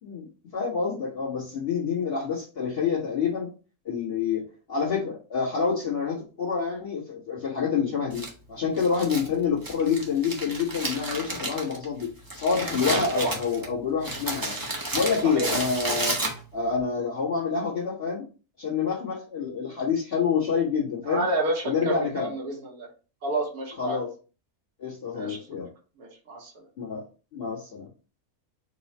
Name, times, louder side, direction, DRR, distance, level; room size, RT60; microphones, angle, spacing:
voice 1, 0.0-3.5 3.8-4.4 4.7-14.5 14.9-16.1 16.5-18.2 18.6-21.2 21.6-22.3 23.8-24.1 24.8-25.7 26.8-27.0 27.3-27.9, left 6 dB, 45° left, -6 dB, 1.6 m, -27 dB
Crumpling crinkling, 8.1-16.7, right 1 dB, 20° right, 0.7 m, -32 dB
voice 2, 21.1-22.9 23.2-24.0 25.1-25.4 26.0-26.5, right 2 dB, 90° right, -1 dB, 1.7 m, -30 dB
4.7 x 2.3 x 4.1 m, 0.35 s
omnidirectional pair, 1.5 m